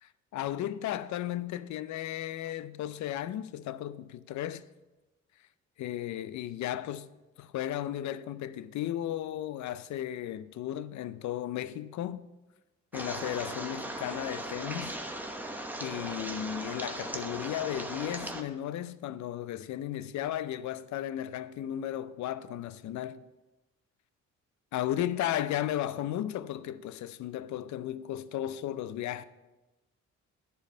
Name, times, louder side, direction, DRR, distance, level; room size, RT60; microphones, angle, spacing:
voice 1, 0.3-4.6 5.8-7.1 7.4-12.2 12.9-15.0 15.8-23.2 24.7-29.2, left 12 dB, 70° left, 0.5 m, -35 dB
sound 1, 12.9-18.4, right 1 dB, 5° right, 0.9 m, -38 dB
10.5 x 4.5 x 5.4 m
cardioid pair, 90°, 30 cm